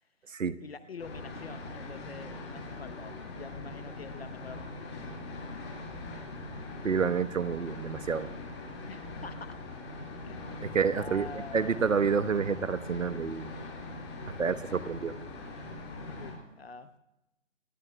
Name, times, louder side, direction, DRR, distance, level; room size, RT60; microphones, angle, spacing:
voice 1, 0.6-5.0 8.9-9.6 10.3-11.8 16.0-17.0, left 5 dB, 50° left, 11 dB, 0.9 m, -46 dB
sound 1, 1.0-16.3, left 2 dB, 20° left, 5.5 m, -42 dB
voice 2, 6.8-8.3 10.6-13.5 14.4-15.1, right 6 dB, 75° right, 13 dB, 1.2 m, -29 dB
28.5 x 16.5 x 2.3 m, 0.95 s
figure-of-eight pair, 160°, 39 cm